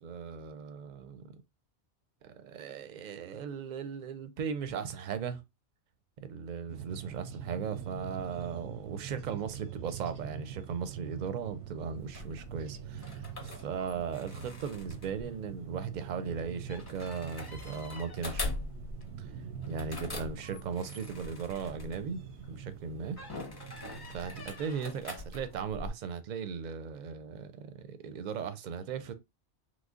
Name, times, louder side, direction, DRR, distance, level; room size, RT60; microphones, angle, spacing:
voice 1, 0.0-1.3 2.2-5.4 6.2-18.4 19.2-19.4 19.7-22.2 22.5-23.2 24.1-29.1, right 6 dB, 55° right, 0.5 m, -37 dB
sound 1, 6.7-24.5, right 7 dB, 90° right, 0.9 m, -45 dB
sound 2, 12.0-22.5 23.1-25.9, left 2 dB, 25° left, 0.6 m, -43 dB
3.2 x 2.0 x 3.6 m
omnidirectional pair, 1.1 m